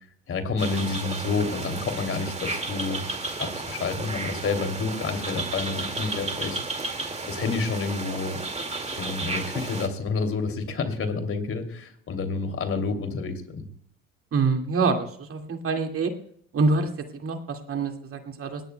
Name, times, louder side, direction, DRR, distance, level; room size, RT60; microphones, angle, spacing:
voice 1, 0.3-3.0 3.4-6.6 7.3-8.4 9.0-13.7, left 4 dB, 45° left, 6 dB, 2.9 m, -29 dB
sound 1, 0.6-9.9, right 3 dB, 20° right, 2.2 m, -33 dB
voice 2, 14.3-16.1 16.5-18.6, right 4 dB, 45° right, 4 dB, 2.2 m, -26 dB
20.5 x 17.0 x 2.3 m, 0.65 s
supercardioid pair, 85°, 31 cm